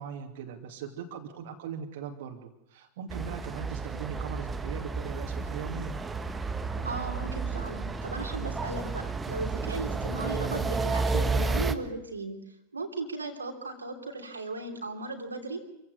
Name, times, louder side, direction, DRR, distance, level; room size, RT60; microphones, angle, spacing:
voice 1, 0.0-6.0, right 7 dB, 55° right, 2 dB, 2.7 m, -40 dB
sound 1, 3.1-11.7, right 4 dB, 15° right, 1.5 m, -31 dB
voice 2, 6.8-12.4 12.7-15.6, right 2 dB, 80° right, 2 dB, 3.0 m, -36 dB
27.0 x 16.0 x 8.2 m, 0.87 s
figure-of-eight pair, 90°, 0 cm